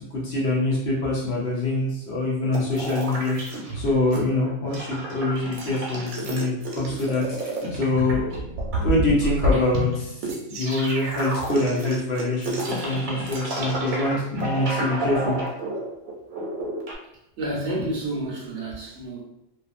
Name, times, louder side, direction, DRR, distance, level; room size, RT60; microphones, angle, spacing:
voice 1, 0.0-8.4 8.7-15.3, left 2 dB, 60° left, -5 dB, 0.8 m, -25 dB
sound 1, 2.5-4.2 4.4-16.9, right 1 dB, 85° right, 1.1 m, -30 dB
voice 2, 17.4-19.2, right 1 dB, 65° right, -3 dB, 0.9 m, -30 dB
2.6 x 2.4 x 2.4 m, 0.83 s
omnidirectional pair, 1.4 m